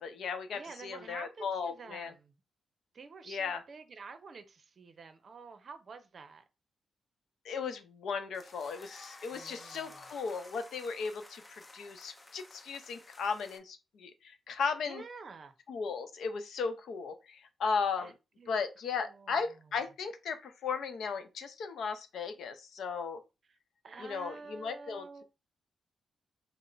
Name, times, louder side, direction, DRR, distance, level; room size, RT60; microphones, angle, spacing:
voice 1, 0.0-2.1 3.3-3.6 7.4-15.0 15.7-18.1 18.5-23.2 24.0-25.2, left 5 dB, 80° left, 0.6 m, -36 dB
voice 2, 0.5-2.3 2.9-6.4 9.3-10.0 14.8-15.5 18.0-18.6 19.0-19.4 23.8-25.2, right 4 dB, 45° right, 0.6 m, -49 dB
sound 1, 8.3-13.6, left 2 dB, 20° left, 0.5 m, -53 dB
4.2 x 2.0 x 3.9 m
wide cardioid pair, 130°, 0 cm